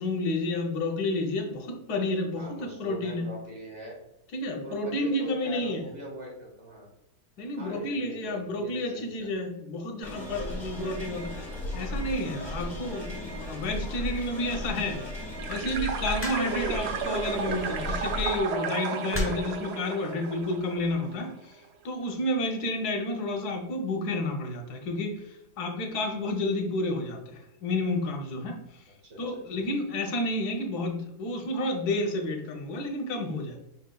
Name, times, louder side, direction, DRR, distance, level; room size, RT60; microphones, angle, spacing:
voice 1, 0.0-3.3 4.3-5.8 7.4-11.4 11.7-15.0 15.5-21.5 21.8-28.6 29.2-33.6, left 1 dB, 85° left, 3 dB, 1.3 m, -30 dB
voice 2, 2.4-4.0 4.6-6.8 7.6-9.3 16.3-16.6 29.0-29.4, right 2 dB, 50° right, -3 dB, 1.9 m, -42 dB
sound 1, 10.0-18.4, left 1 dB, 30° left, 1.5 m, -36 dB
sound 2, 15.4-21.1, right 5 dB, 70° right, 0.6 m, -33 dB
sound 3, 16.2-16.7 17.9-18.2 19.1-19.6 20.6-20.9, left 1 dB, 15° left, 0.5 m, -33 dB
5.3 x 3.9 x 2.2 m, 0.89 s
omnidirectional pair, 1.6 m